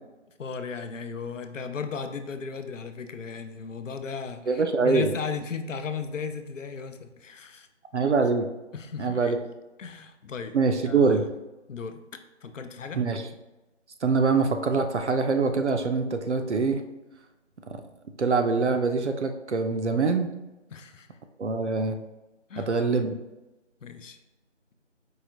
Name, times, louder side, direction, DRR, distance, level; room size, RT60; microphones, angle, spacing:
voice 1, 0.4-7.7 8.7-9.4 9.8-10.6 10.8-11.3 11.7-12.0 12.4-13.0 20.7-21.1 22.5-22.7 23.8-24.2, left 5 dB, 85° left, 8 dB, 0.5 m, -36 dB
voice 2, 4.5-5.1 7.9-8.5 9.0-9.4 10.5-11.2 12.9-13.2 14.0-16.8 17.7-17.8 18.2-20.3 21.4-22.0 22.6-23.1, right 4 dB, 65° right, 6 dB, 0.5 m, -24 dB
4.7 x 2.4 x 2.7 m, 1.0 s
figure-of-eight pair, 170°, 37 cm